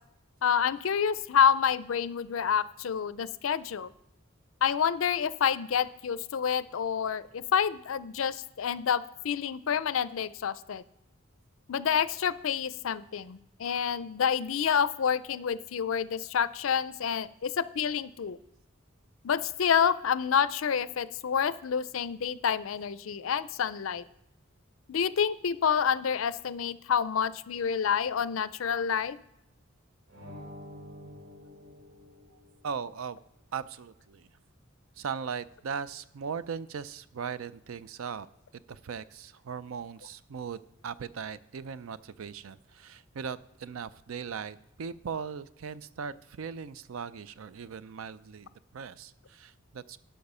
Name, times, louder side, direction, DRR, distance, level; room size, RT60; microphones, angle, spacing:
voice 1, 0.4-3.9 4.6-10.8 11.7-18.4 19.2-24.0 24.9-29.2, left 7 dB, 75° left, 16 dB, 0.5 m, -28 dB
sound 1, 30.1-32.8, equal, 60° right, 3.0 m, -48 dB
voice 2, 32.3-33.2 33.5-34.3 35.0-38.3 38.7-50.0, right 6 dB, 85° right, 16 dB, 0.4 m, -39 dB
11.5 x 5.8 x 5.5 m, 0.85 s
head